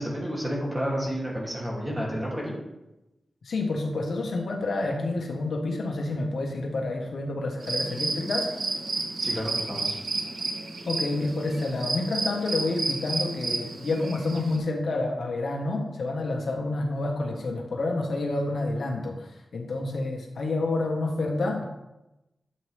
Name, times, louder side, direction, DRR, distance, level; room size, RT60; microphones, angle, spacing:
voice 1, 0.0-2.6 9.2-9.9, equal, 10° right, -4 dB, 3.0 m, -30 dB
voice 2, 3.4-8.5 10.9-21.6, left 2 dB, 70° left, 1 dB, 1.6 m, -29 dB
sound 1, 7.6-14.6, right 3 dB, 75° right, 1.7 m, -31 dB
12.0 x 7.9 x 3.6 m, 0.96 s
wide cardioid pair, 165°, 0 cm